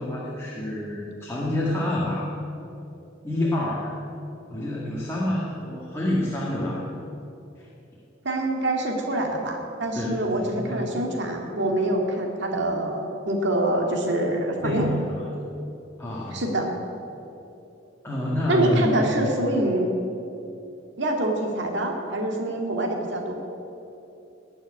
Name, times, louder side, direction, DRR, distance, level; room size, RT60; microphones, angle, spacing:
voice 1, 0.0-2.3 3.2-4.0 4.5-6.8 7.6-7.7 9.9-10.8 14.6-15.3 16.0-16.4 18.0-19.1, left 1 dB, 15° left, -5 dB, 1.9 m, -28 dB
voice 2, 8.2-14.9 16.3-16.7 18.5-19.9 21.0-23.3, right 1 dB, 60° right, 1 dB, 2.1 m, -25 dB
19.0 x 6.4 x 9.9 m, 2.8 s
head